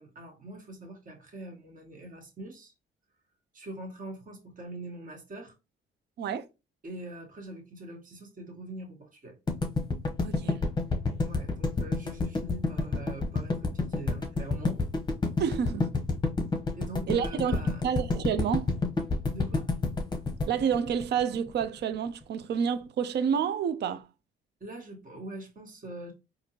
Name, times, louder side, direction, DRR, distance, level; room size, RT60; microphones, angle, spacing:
voice 1, 0.0-2.7 3.5-5.5 6.8-9.4 11.2-14.8 16.7-17.8 19.3-19.7 24.6-26.1, right 1 dB, 40° right, 1.4 m, -43 dB
sound 1, 9.5-21.6, left 3 dB, 20° left, 0.8 m, -29 dB
voice 2, 10.2-10.6 15.4-16.0 17.1-18.7 20.5-24.1, right 7 dB, 60° right, 0.5 m, -29 dB
4.2 x 2.7 x 2.8 m
cardioid pair, 90°, 20 cm